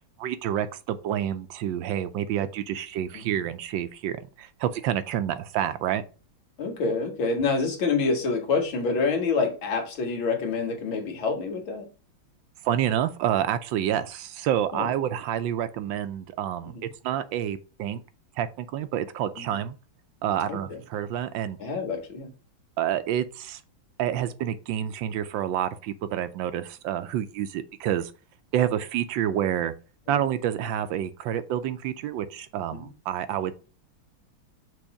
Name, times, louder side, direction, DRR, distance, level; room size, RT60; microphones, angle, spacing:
voice 1, 0.2-6.0 12.6-16.7 17.0-18.0 18.4-19.8 20.2-21.6 22.8-23.6 24.0-28.1 28.5-29.7 30.1-33.5, right 10 dB, 75° right, 1.3 m, -28 dB
voice 2, 6.6-11.9 14.7-14.9 16.6-16.9 19.4-19.6 20.5-20.8 21.6-22.3 32.7-32.9, left 4 dB, 85° left, 2.3 m, -27 dB
6.2 x 3.1 x 5.8 m
omnidirectional pair, 2.2 m